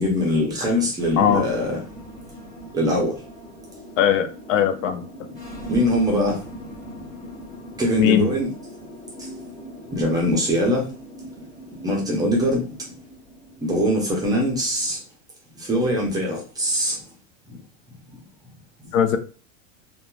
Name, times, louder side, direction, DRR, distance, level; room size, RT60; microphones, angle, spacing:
voice 1, 0.0-1.8 2.7-3.1 5.7-6.4 7.8-8.5 9.9-10.8 11.8-12.6 13.6-15.0 15.7-17.0, equal, 10° right, 0.5 m, -22 dB
sound 1, 1.0-14.9, equal, 10° left, 1.1 m, -40 dB
voice 2, 4.0-5.0 8.0-8.3 18.9-19.2, left 9 dB, 70° left, 0.5 m, -19 dB
2.8 x 2.2 x 2.3 m
hypercardioid pair, 125°, 40 cm